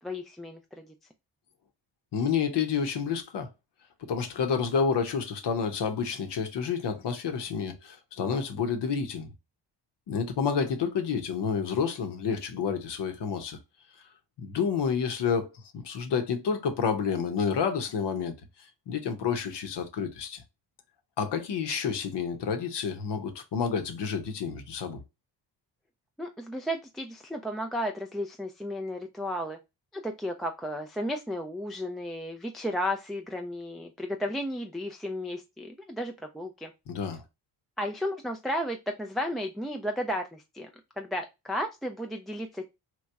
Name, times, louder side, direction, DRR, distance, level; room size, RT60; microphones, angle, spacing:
voice 1, 0.0-0.9 26.2-29.6 29.9-36.7 37.8-40.7 41.0-42.7, equal, ahead, 0.3 m, -33 dB
voice 2, 2.1-3.5 4.0-9.3 10.1-13.6 14.4-15.5 15.7-18.3 18.9-20.4 21.2-25.0 36.9-37.2, left 6 dB, 65° left, 0.9 m, -29 dB
3.0 x 2.3 x 3.3 m
supercardioid pair, 55°, 45 cm